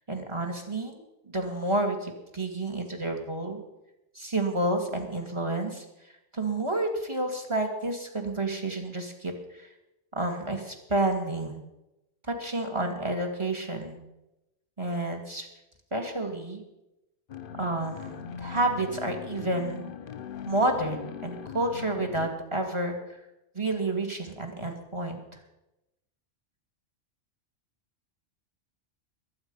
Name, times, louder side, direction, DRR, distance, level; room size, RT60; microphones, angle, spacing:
voice 1, 0.1-1.0 1.3-3.6 4.1-5.8 6.3-9.7 10.1-11.6 12.3-14.0 14.8-15.5 15.9-16.6 17.6-19.9 20.5-23.0 23.5-25.2, right 2 dB, 25° right, 2 dB, 2.2 m, -30 dB
sound 1, 17.3-22.3, left 7 dB, 50° left, 0.9 m, -40 dB
22.0 x 8.8 x 5.4 m, 0.92 s
omnidirectional pair, 1.2 m